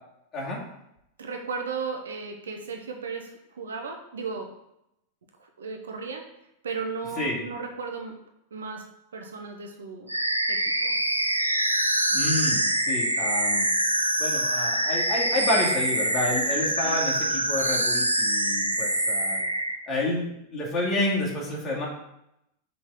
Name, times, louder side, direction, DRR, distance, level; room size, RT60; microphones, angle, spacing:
voice 1, 1.2-4.5 5.4-6.2 6.6-8.1 8.5-8.8 9.1-10.1 10.5-10.6 10.8-10.9 16.8-17.0, right 5 dB, 65° right, 3 dB, 1.0 m, -35 dB
voice 2, 7.2-7.5 12.1-13.6 14.2-19.4 19.9-21.9, left 2 dB, 25° left, -4 dB, 2.5 m, -29 dB
sound 1, 10.1-19.8, right 1 dB, 85° right, 0.6 m, -25 dB
5.9 x 3.9 x 5.8 m, 0.82 s
figure-of-eight pair, 90°, 0 cm